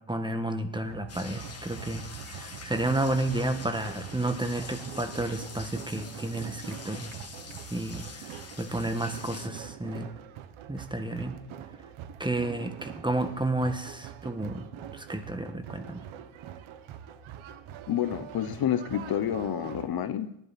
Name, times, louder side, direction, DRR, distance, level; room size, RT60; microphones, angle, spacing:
voice 1, 0.1-7.1 7.7-8.0 8.6-10.1 10.7-11.4 12.2-16.0, right 2 dB, 10° right, 8 dB, 1.4 m, -31 dB
sound 1, 0.9-19.9, right 10 dB, 80° right, 1.3 m, -44 dB
sound 2, 1.1-9.5, left 5 dB, 30° left, 1.6 m, -45 dB
voice 2, 17.9-20.3, left 10 dB, 50° left, 12 dB, 1.0 m, -29 dB
19.0 x 11.0 x 4.2 m, 0.78 s
cardioid pair, 95°, 47 cm